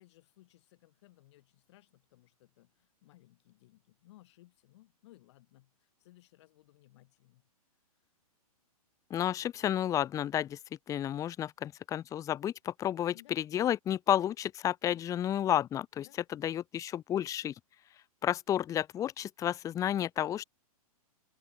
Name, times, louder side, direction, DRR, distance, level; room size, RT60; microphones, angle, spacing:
voice 1, 0.0-5.7 6.0-7.4 13.1-13.4 16.0-16.4, left 17 dB, 50° left, 7.7 m, -61 dB
voice 2, 9.1-10.6 10.9-17.5 18.2-20.4, left 11 dB, 15° left, 0.7 m, -31 dB
figure-of-eight pair, 110°, 19 cm